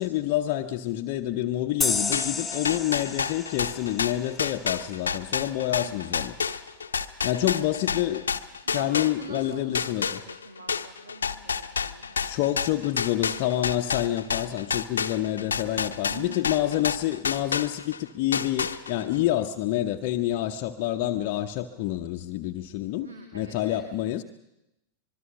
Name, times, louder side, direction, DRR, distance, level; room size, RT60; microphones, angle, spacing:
voice 1, 0.0-6.3 7.2-8.2 8.7-10.2 12.2-23.1 23.3-24.2, left 13 dB, 45° left, 4 dB, 0.9 m, -28 dB
sound 1, 1.8-5.1, left 4 dB, 5° left, 1.8 m, -31 dB
sound 2, 2.1-9.4 9.7-18.0 18.3-19.1, left 6 dB, 70° left, 0.9 m, -29 dB
voice 2, 2.5-2.9 5.7-6.3 7.3-7.9 8.7-13.0 15.5-16.4 23.0-23.8, right 2 dB, 70° right, 5 dB, 2.6 m, -45 dB
25.0 x 22.0 x 6.1 m, 0.89 s
figure-of-eight pair, 90°, 0 cm